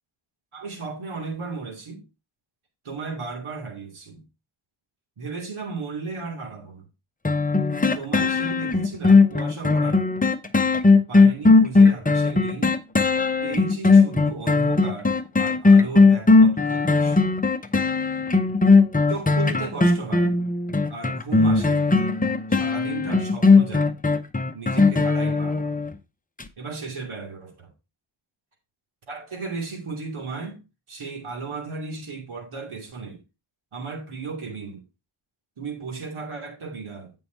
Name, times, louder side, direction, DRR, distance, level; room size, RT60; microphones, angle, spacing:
voice 1, 0.5-2.0 2.8-4.2 5.2-6.8 7.9-10.1 11.1-12.8 13.4-17.4 19.1-20.4 20.9-21.9 22.5-24.0 24.5-25.8 26.6-27.7 29.1-30.6 30.9-33.2 33.7-34.8 35.6-37.1, right 4 dB, 75° right, 2.8 m, -35 dB
sound 1, 7.2-25.9 26.4-26.5, left 3 dB, 15° left, 0.7 m, -18 dB
8.8 x 5.4 x 4.5 m
wide cardioid pair, 115°, 49 cm